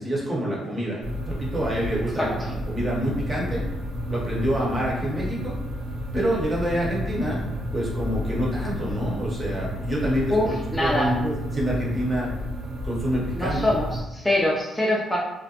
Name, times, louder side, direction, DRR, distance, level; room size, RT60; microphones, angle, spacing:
voice 1, 0.0-3.7 4.1-5.5 6.1-7.5 7.7-12.3 12.8-13.6, equal, 30° right, -4 dB, 0.8 m, -27 dB
sound 1, 1.0-14.0, equal, 85° right, 0.5 m, -31 dB
voice 2, 2.2-2.5 10.3-11.2 13.4-15.2, left 1 dB, 10° left, -5 dB, 0.4 m, -24 dB
2.4 x 2.1 x 2.7 m, 1.0 s
cardioid pair, 90°, 0 cm